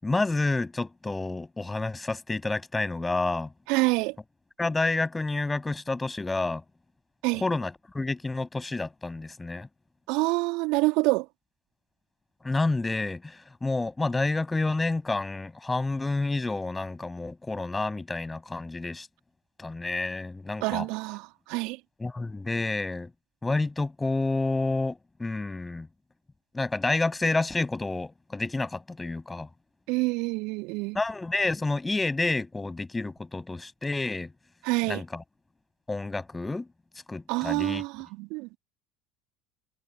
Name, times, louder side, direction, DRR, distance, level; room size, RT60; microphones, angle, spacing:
voice 1, 0.0-3.5 4.6-6.6 7.4-9.7 12.4-19.1 19.6-20.9 22.0-23.1 23.4-25.9 26.5-29.5 30.9-34.3 34.9-35.2 35.9-36.7 37.1-37.8, left 3 dB, 15° left, 7.3 m, -29 dB
voice 2, 3.7-4.1 7.2-7.4 10.1-11.3 20.6-21.8 29.9-31.0 34.6-35.0 37.3-38.6, right 25 dB, 60° right, 2.7 m, -27 dB
figure-of-eight pair, 70°, 0 cm